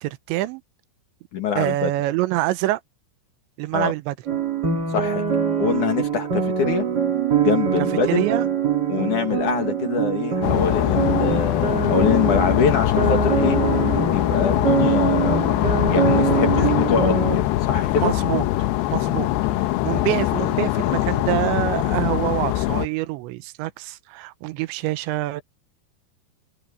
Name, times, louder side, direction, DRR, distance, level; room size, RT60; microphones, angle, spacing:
voice 1, 0.0-0.6 1.6-2.8 3.6-4.1 8.0-8.5 16.6-16.7 18.0-19.3 19.8-25.4, right 16 dB, 85° right, 3.1 m, -26 dB
voice 2, 1.3-1.9 3.7-3.9 4.9-5.2 5.6-6.9 7.4-8.3 8.9-13.6 14.1-15.5 15.9-17.3 17.6-18.1, left 6 dB, 50° left, 3.0 m, -24 dB
sound 1, 4.3-17.4, right 7 dB, 35° right, 1.8 m, -23 dB
sound 2, 10.4-22.9, left 15 dB, 80° left, 2.6 m, -22 dB
omnidirectional pair, 5.1 m